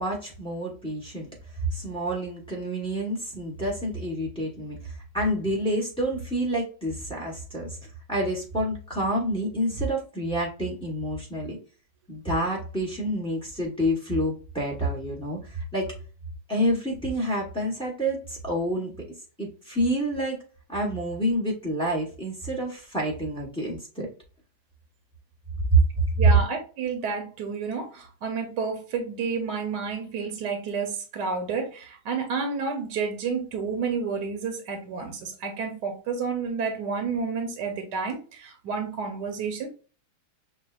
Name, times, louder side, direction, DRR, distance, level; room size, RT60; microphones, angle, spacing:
voice 1, 0.0-7.8 8.1-11.6 12.1-15.9 16.5-18.9 19.4-20.4 20.7-24.1 25.7-25.8, right 1 dB, 5° left, -1 dB, 0.4 m, -28 dB
voice 2, 26.2-39.7, right 5 dB, 65° right, 5 dB, 1.2 m, -30 dB
6.9 x 2.3 x 2.3 m, 0.37 s
omnidirectional pair, 2.3 m